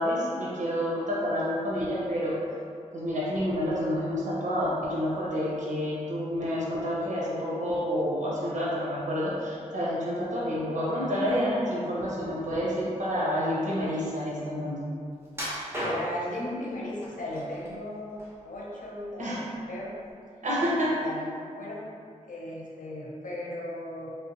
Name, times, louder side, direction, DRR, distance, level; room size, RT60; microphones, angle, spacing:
voice 1, 0.0-2.4 2.9-14.8 19.2-19.4 20.4-20.9, equal, 70° right, -6 dB, 1.1 m, -29 dB
sound 1, 15.3-16.4 17.0-17.7 18.1-19.0 19.4-19.6 20.1-20.2, equal, 20° right, 1.0 m, -34 dB
voice 2, 15.8-18.2 18.4-20.0 20.8-21.9 22.3-24.1, left 1 dB, 85° left, -4 dB, 0.7 m, -36 dB
3.5 x 3.4 x 2.9 m, 2.3 s
wide cardioid pair, 90°, 13 cm